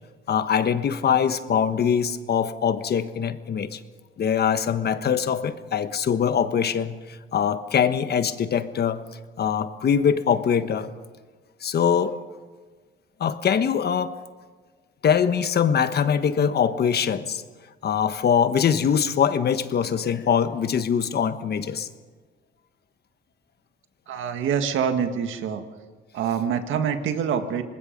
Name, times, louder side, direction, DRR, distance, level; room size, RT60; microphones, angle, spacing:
voice 1, 0.3-3.8 4.2-9.0 9.4-10.9 11.6-12.2 13.2-14.2 15.0-17.4 17.8-21.9, left 7 dB, 55° left, 11 dB, 1.3 m, -23 dB
voice 2, 24.1-25.6 26.1-27.6, right 7 dB, 80° right, 7 dB, 1.8 m, -25 dB
25.5 x 20.5 x 5.3 m, 1.4 s
cardioid pair, 90°, 20 cm